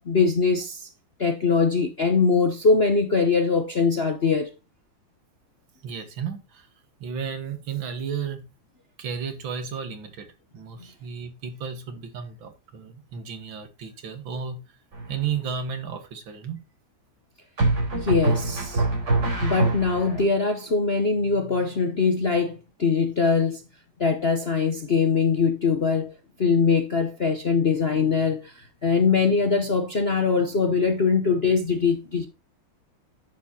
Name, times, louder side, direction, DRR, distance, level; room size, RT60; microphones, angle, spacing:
voice 1, 0.1-0.9 1.2-4.5 18.0-18.8 19.4-23.6 24.0-26.1 26.4-32.3, left 5 dB, 50° left, 0.8 m, -22 dB
voice 2, 5.8-6.7 7.0-8.5 9.0-10.3 10.5-14.6 15.1-16.6, right 7 dB, 70° right, 2.2 m, -33 dB
sound 1, 14.9-15.5 17.6-20.2, right 2 dB, 55° right, 4.9 m, -24 dB
10.0 x 7.1 x 2.8 m
omnidirectional pair, 2.3 m